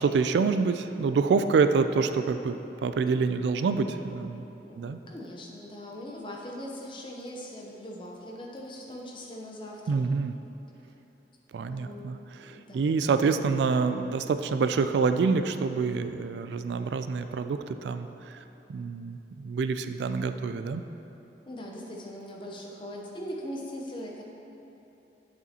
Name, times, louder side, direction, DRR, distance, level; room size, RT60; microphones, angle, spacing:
voice 1, 0.0-4.4 4.8-5.0 9.9-10.3 11.5-18.1 18.7-20.8, right 5 dB, 80° right, 10 dB, 0.3 m, -27 dB
voice 2, 4.6-10.0 11.6-12.2 12.4-12.9 21.5-24.2, equal, 30° left, -2 dB, 0.8 m, -40 dB
8.4 x 6.8 x 2.9 m, 3.0 s
head